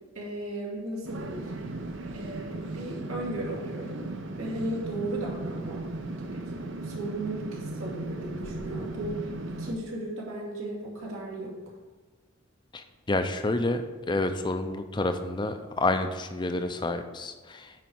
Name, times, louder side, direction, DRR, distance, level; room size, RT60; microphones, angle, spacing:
voice 1, 0.1-1.7 2.1-4.1 4.3-5.9 6.2-11.7, right 1 dB, 80° right, -3 dB, 2.3 m, -36 dB
sound 1, 1.0-9.8, right 2 dB, 65° right, 0.7 m, -37 dB
voice 2, 12.7-13.8 14.1-17.7, left 2 dB, 20° left, 8 dB, 0.5 m, -29 dB
9.3 x 4.8 x 4.6 m, 1.3 s
head